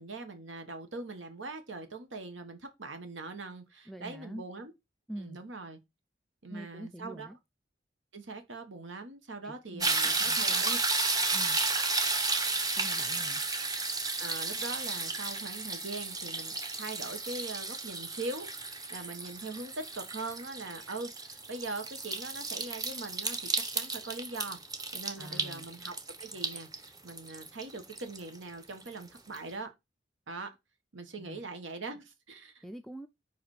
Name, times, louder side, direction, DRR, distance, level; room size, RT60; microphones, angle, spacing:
voice 1, 0.0-4.7 5.2-5.8 6.4-7.3 8.1-10.8 14.2-24.6 24.9-25.9 26.2-29.7 30.3-30.5 30.9-32.6, right 3 dB, 85° right, 1.3 m, -42 dB
voice 2, 3.9-4.4 5.1-5.4 6.5-7.4 9.4-10.6 11.3-11.6 12.8-13.4 25.2-25.7 31.2-31.4 32.6-33.1, right 1 dB, ahead, 0.4 m, -45 dB
sound 1, 9.8-28.9 29.3-29.4, right 3 dB, 20° right, 0.8 m, -33 dB
5.1 x 4.8 x 4.8 m
head